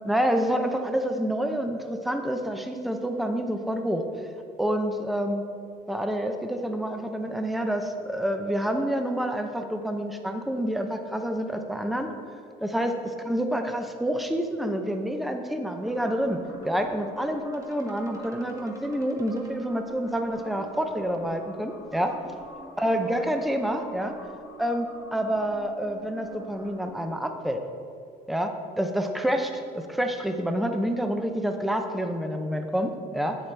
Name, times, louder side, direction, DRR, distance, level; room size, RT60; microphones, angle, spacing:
voice 1, 0.0-4.0 4.6-5.4 5.9-12.1 12.6-12.9 13.2-16.4 16.6-22.1 22.8-24.1 24.6-27.6 28.3-28.5 28.8-33.4, equal, ahead, 5 dB, 0.6 m, -28 dB
sound 1, 15.8-27.2, right 1 dB, 20° right, 1.2 m, -45 dB
8.7 x 7.3 x 3.3 m, 2.4 s
cardioid pair, 110°, 17 cm